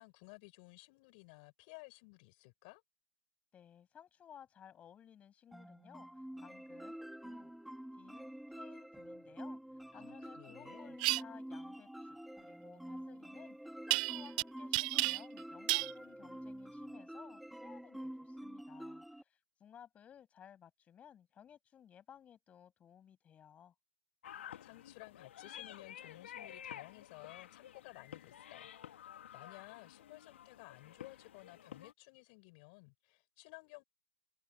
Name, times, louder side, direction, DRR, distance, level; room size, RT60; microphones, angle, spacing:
voice 1, 0.0-2.8 9.9-10.9 24.6-33.8, left 30 dB, 40° left, 7.6 m, -56 dB
voice 2, 3.5-23.7, left 9 dB, 20° left, 8.0 m, -59 dB
sound 1, 5.5-19.2, equal, ahead, 4.5 m, -48 dB
sound 2, 11.0-11.2 13.9-14.4 14.7-15.4 15.7-15.9, right 23 dB, 35° right, 0.4 m, -32 dB
sound 3, 24.2-31.9, left 10 dB, 60° left, 2.5 m, -51 dB
figure-of-eight pair, 125°, 7 cm